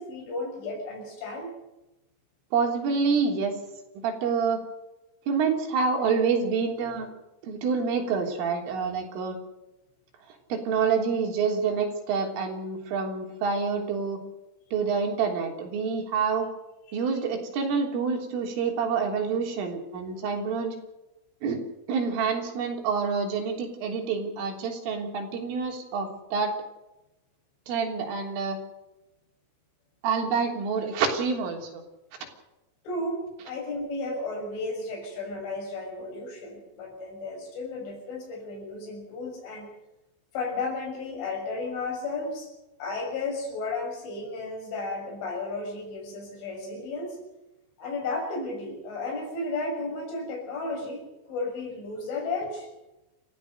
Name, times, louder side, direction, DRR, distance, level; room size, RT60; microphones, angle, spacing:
voice 1, 0.0-1.5 16.9-17.0 32.9-39.7 40.3-42.5 42.8-47.2 47.8-52.7, left 3 dB, 70° left, 2 dB, 8.7 m, -33 dB
voice 2, 2.5-3.6 4.0-4.6 5.3-7.1 7.4-9.4 10.3-14.2 14.7-16.5 16.9-20.8 21.4-21.6 21.9-26.5 27.7-28.6 30.0-31.8, right 5 dB, 80° right, 3 dB, 5.9 m, -27 dB
29.0 x 14.5 x 6.7 m, 0.98 s
omnidirectional pair, 5.7 m